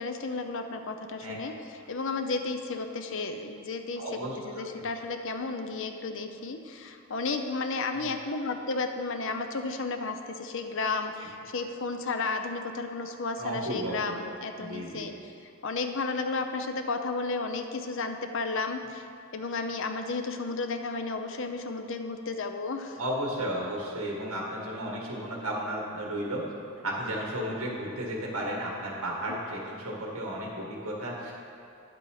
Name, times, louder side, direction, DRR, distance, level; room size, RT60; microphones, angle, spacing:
voice 1, 0.0-1.6 1.9-4.0 4.4-15.3 15.6-19.1 19.3-23.0, left 3 dB, 60° left, 6 dB, 0.6 m, -33 dB
voice 2, 4.0-4.7 7.9-8.0 13.4-14.1 14.6-15.0 23.0-26.5 26.8-31.3, right 1 dB, 70° right, -2 dB, 2.0 m, -34 dB
10.0 x 7.7 x 4.8 m, 2.5 s
head